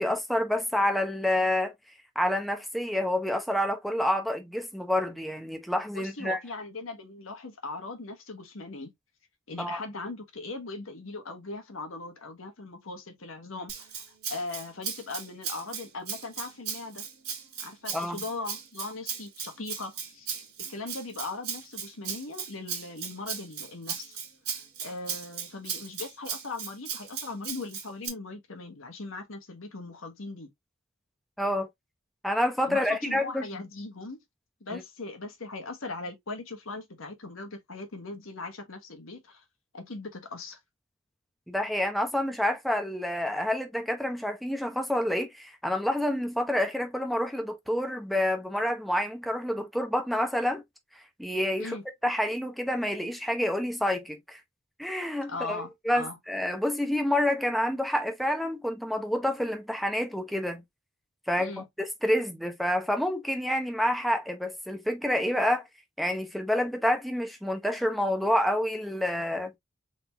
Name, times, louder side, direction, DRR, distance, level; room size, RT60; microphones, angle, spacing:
voice 1, 0.0-1.7 2.2-6.4 9.6-9.8 17.9-18.2 31.4-31.7 32.2-33.4 34.7-34.8 41.5-50.6 50.9-51.8 52.0-54.4 54.8-60.6 61.3-61.5 61.8-65.6 66.0-69.5, left 1 dB, ahead, 0.8 m, -28 dB
voice 2, 5.9-8.9 9.5-14.0 14.3-17.0 17.6-20.3 20.7-24.2 24.8-30.5 32.7-34.2 34.6-39.4 39.7-40.6 51.6-51.8 55.3-56.2 61.4-61.6, left 3 dB, 80° left, 1.3 m, -39 dB
Rattle (instrument), 13.7-28.1, right 7 dB, 55° right, 1.8 m, -37 dB
3.9 x 3.8 x 2.7 m
head